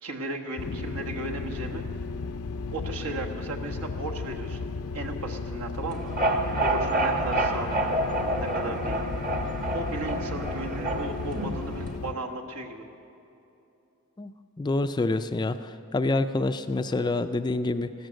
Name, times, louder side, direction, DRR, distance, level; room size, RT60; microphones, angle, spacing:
voice 1, 0.0-1.8 2.7-4.7 4.9-6.1 6.6-7.7 8.4-9.0 9.7-12.8, right 2 dB, 70° right, 2 dB, 1.4 m, -35 dB
sound 1, 0.6-12.1, left 4 dB, 75° left, 0.5 m, -35 dB
sound 2, 5.9-12.0, right 1 dB, 40° right, 1.2 m, -28 dB
voice 2, 14.6-17.9, left 2 dB, 20° left, 10 dB, 0.3 m, -27 dB
15.5 x 14.0 x 6.5 m, 2.8 s
head